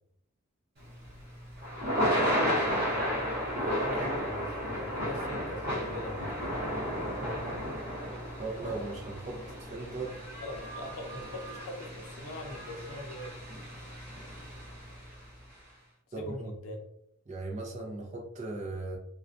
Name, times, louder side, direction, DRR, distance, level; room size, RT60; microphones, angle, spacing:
Thunder / Rain, 0.9-15.1, equal, 50° right, 1.0 m, -33 dB
voice 1, 2.8-6.5 10.4-13.3 16.2-16.8, left 1 dB, 75° left, 3 dB, 0.5 m, -42 dB
voice 2, 8.4-10.2 16.1-16.5 17.3-19.0, right 2 dB, 35° right, 0 dB, 0.5 m, -38 dB
2.3 x 2.2 x 2.5 m, 0.74 s
head